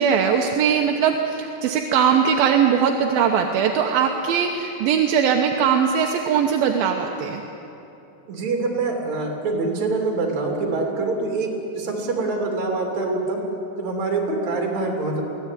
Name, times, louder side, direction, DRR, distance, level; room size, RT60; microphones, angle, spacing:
voice 1, 0.0-7.4, right 7 dB, 75° right, 2 dB, 2.4 m, -20 dB
voice 2, 8.3-13.4 13.8-15.2, right 3 dB, 45° right, 1 dB, 4.0 m, -25 dB
23.0 x 17.0 x 9.3 m, 2.9 s
omnidirectional pair, 5.0 m